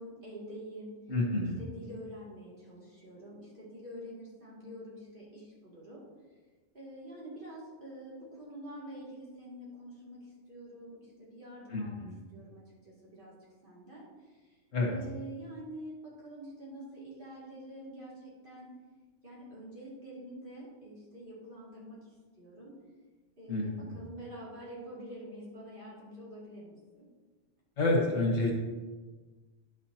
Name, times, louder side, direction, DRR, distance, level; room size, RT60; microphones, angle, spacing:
voice 1, 0.0-0.9 1.6-6.0 6.7-12.1 12.3-13.4 13.6-14.6 14.8-18.7 19.2-22.8 23.4-27.1, right 1 dB, 45° right, -7 dB, 2.7 m, -47 dB
voice 2, 1.1-1.6 11.7-12.2 14.7-14.9 23.5-23.9 27.8-28.6, left 2 dB, 80° left, -1 dB, 1.9 m, -29 dB
10.5 x 6.3 x 2.9 m, 1.3 s
omnidirectional pair, 1.3 m